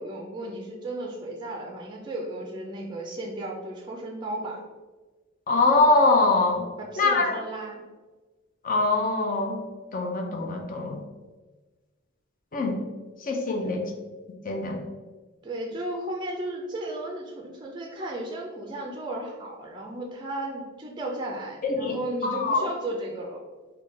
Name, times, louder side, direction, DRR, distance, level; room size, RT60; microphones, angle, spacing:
voice 1, 0.0-4.6 6.8-7.8 13.6-13.9 15.4-23.4, right 1 dB, 25° right, 0 dB, 0.4 m, -34 dB
voice 2, 5.5-6.6 7.0-7.4 8.6-9.6 9.9-11.0 12.5-12.8 13.2-13.9 14.4-14.8 21.6-22.0 22.3-22.6, left 3 dB, 40° left, 3 dB, 0.5 m, -23 dB
3.6 x 2.2 x 3.7 m, 1.3 s
head